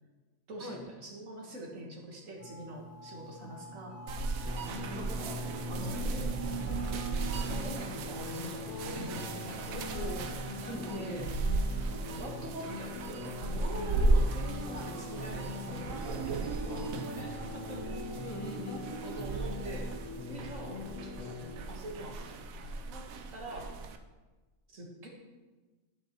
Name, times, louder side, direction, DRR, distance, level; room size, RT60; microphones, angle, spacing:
voice 1, 0.5-4.0 4.8-6.4 7.4-9.7 10.6-11.3 12.0-17.8 19.0-19.9 20.3-21.3 21.6-22.5 22.9-23.1 23.3-23.8 24.7-25.1, right 1 dB, 65° right, -1 dB, 1.7 m, -44 dB
sound 1, 2.4-7.8, right 5 dB, 80° left, 3.3 m, -42 dB
sound 2, 4.1-24.0, right 2 dB, 80° right, 1.0 m, -35 dB
sound 3, 4.4-21.6, left 3 dB, 55° left, 0.4 m, -42 dB
voice 2, 4.9-5.2 9.7-10.3 10.7-11.3 18.2-18.9, left 1 dB, 15° left, 1 dB, 0.8 m, -41 dB
11.5 x 5.9 x 2.9 m, 1.2 s
omnidirectional pair, 1.5 m